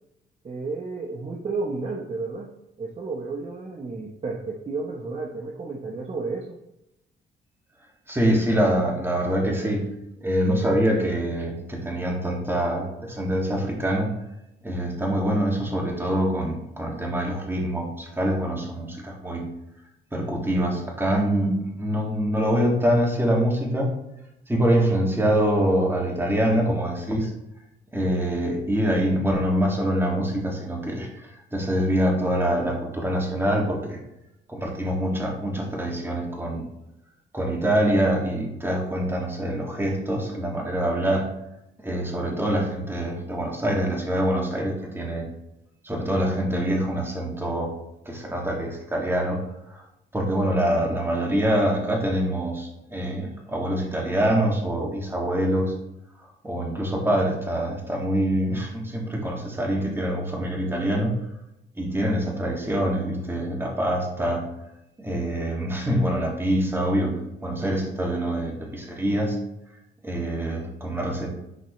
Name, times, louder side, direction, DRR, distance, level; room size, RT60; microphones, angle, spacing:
voice 1, 0.4-2.5 2.8-6.6, right 3 dB, 30° right, -1 dB, 1.0 m, -32 dB
voice 2, 8.1-9.9 10.2-14.1 14.6-19.5 20.1-24.0 24.5-27.3 27.9-34.0 34.5-36.6 37.3-41.3 41.8-45.3 45.8-47.7 48.1-49.4 49.7-49.8 50.1-55.7 56.4-61.2 61.8-64.5 65.0-69.4 70.0-71.3, equal, 10° right, -1 dB, 2.3 m, -25 dB
11.0 x 4.4 x 3.2 m, 0.86 s
cardioid pair, 90°, 20 cm